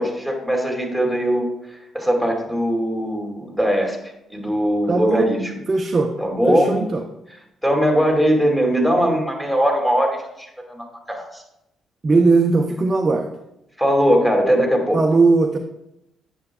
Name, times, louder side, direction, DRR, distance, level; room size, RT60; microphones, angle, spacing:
voice 1, 0.0-1.4 1.9-4.0 4.3-5.5 6.2-6.8 7.6-11.4 13.8-15.0, equal, 5° left, 0 dB, 2.3 m, -20 dB
voice 2, 4.9-5.3 5.7-6.1 6.5-7.0 12.0-13.3 14.9-15.6, right 3 dB, 35° right, 3 dB, 0.6 m, -18 dB
8.5 x 6.9 x 2.3 m, 0.84 s
hypercardioid pair, 50°, 0 cm